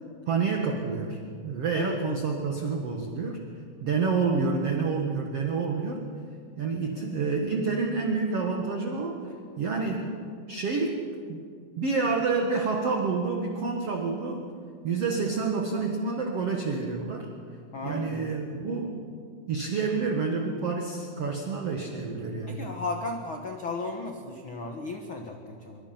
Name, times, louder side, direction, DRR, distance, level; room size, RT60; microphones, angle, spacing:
voice 1, 0.3-3.4 3.8-6.0 6.6-9.2 9.6-10.2 10.5-11.0 11.3-11.4 11.8-14.5 14.8-17.3 17.8-19.0 19.5-22.6, right 4 dB, 50° right, 2 dB, 2.2 m, -28 dB
voice 2, 1.7-2.2 17.7-18.2 22.5-25.8, left 3 dB, 50° left, 3 dB, 1.5 m, -35 dB
25.5 x 24.0 x 5.9 m, 2.1 s
omnidirectional pair, 4.3 m